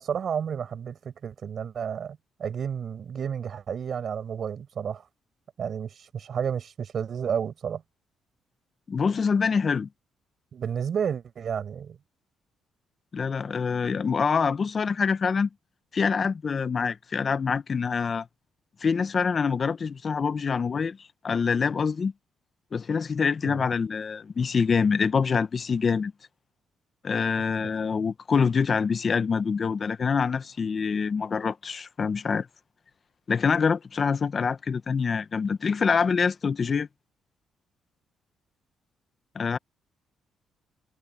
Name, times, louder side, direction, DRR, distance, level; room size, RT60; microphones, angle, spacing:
voice 1, 0.0-5.0 5.6-7.8 10.5-12.0 23.4-23.6, right 7 dB, 55° right, 6.4 m, -31 dB
voice 2, 8.9-9.9 13.1-15.5 15.9-18.3 18.8-21.0 21.2-22.1 22.7-26.1 27.0-32.5 33.3-36.9 39.3-39.6, left 5 dB, 40° left, 0.8 m, -25 dB
cardioid pair, 90°, 0 cm